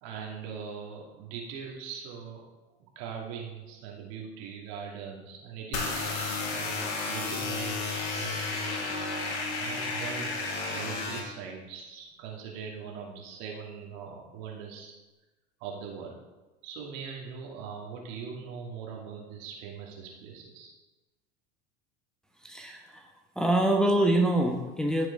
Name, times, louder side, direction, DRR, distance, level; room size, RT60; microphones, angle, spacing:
voice 1, 0.0-2.5 3.0-8.9 9.6-14.9 15.6-16.1 16.6-20.7, right 6 dB, 55° right, 0 dB, 2.5 m, -41 dB
sound 1, 5.7-11.2, left 3 dB, 45° left, 2.6 m, -32 dB
voice 2, 22.4-23.1 23.4-25.1, right 1 dB, ahead, 1 dB, 1.2 m, -25 dB
14.0 x 6.4 x 3.9 m, 1.1 s
figure-of-eight pair, 80°, 34 cm